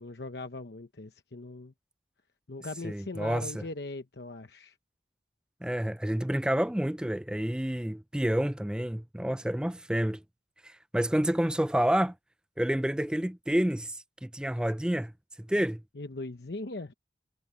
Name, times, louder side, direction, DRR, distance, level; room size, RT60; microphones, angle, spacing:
voice 1, 0.0-1.7 2.5-4.8 15.9-16.9, left 2 dB, 70° left, 1.0 m, -40 dB
voice 2, 2.8-3.7 5.6-10.2 10.6-12.1 12.6-15.1 15.4-15.8, equal, 5° right, 0.3 m, -29 dB
head